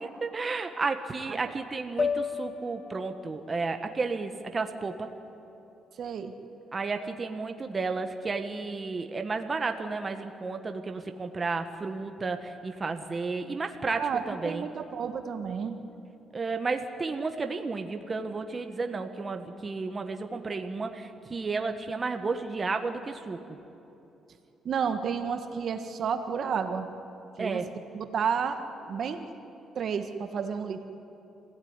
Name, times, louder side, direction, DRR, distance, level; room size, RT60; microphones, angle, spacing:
voice 1, 0.2-5.1 6.7-14.6 16.3-23.4 27.4-27.7, right 4 dB, 30° right, 6 dB, 1.5 m, -32 dB
sound 1, 2.0-6.3, left 5 dB, 35° left, 1.5 m, -36 dB
voice 2, 6.0-6.3 13.9-15.8 24.6-26.9 27.4-27.6 27.9-29.3 29.7-30.8, right 6 dB, 60° right, 7 dB, 1.6 m, -31 dB
26.5 x 16.5 x 9.8 m, 2.9 s
cardioid pair, 90°, 0 cm